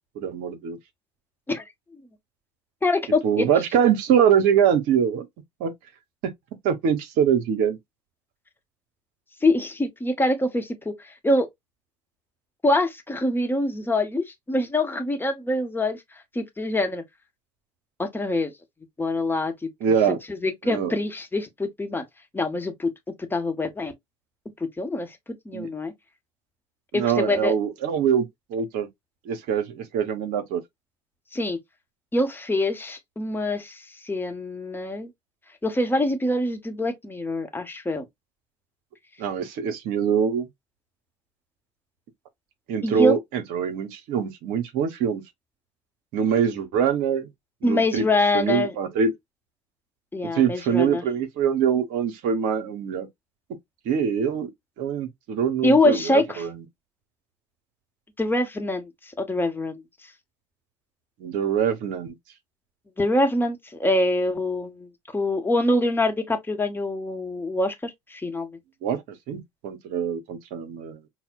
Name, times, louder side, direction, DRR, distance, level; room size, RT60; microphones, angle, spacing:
voice 1, 0.1-0.8 3.2-5.3 5.6-5.7 6.6-7.8 19.8-20.2 20.6-20.9 25.5-25.7 26.9-28.9 29.2-30.6 39.2-40.5 42.7-45.2 46.1-47.3 47.6-48.1 48.3-49.1 50.3-53.1 53.8-54.5 54.8-56.6 61.2-62.1 68.8-69.0 69.3-71.0, right 7 dB, 65° right, 0.8 m, -23 dB
voice 2, 2.8-3.4 9.4-11.5 12.6-16.0 16.3-17.0 18.0-18.5 19.0-19.5 20.3-22.0 22.3-22.9 23.3-23.9 24.8-25.2 25.4-25.9 26.9-27.5 31.3-31.6 32.1-35.1 35.6-38.1 42.8-43.1 47.6-48.7 50.1-51.0 55.6-56.4 58.2-59.8 63.0-68.5, left 1 dB, 15° left, 0.9 m, -24 dB
5.7 x 2.1 x 2.3 m
hypercardioid pair, 65°, 16 cm